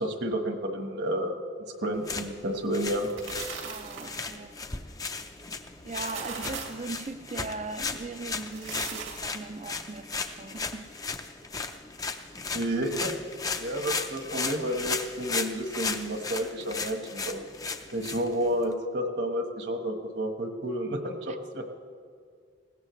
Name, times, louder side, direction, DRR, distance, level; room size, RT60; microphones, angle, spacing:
voice 1, 0.0-1.3 1.8-3.1 12.5-13.1 13.6-17.5 17.9-21.7, right 1 dB, 60° right, 1.3 m, -30 dB
sound 1, 1.9-18.7, left 4 dB, 20° left, 0.5 m, -36 dB
sound 2, 3.0-4.3 5.8-6.9 8.4-9.4, right 5 dB, 80° right, 2.2 m, -39 dB
voice 2, 3.6-4.6 5.8-10.9, right 3 dB, 35° right, 0.5 m, -39 dB
19.5 x 17.0 x 3.2 m
head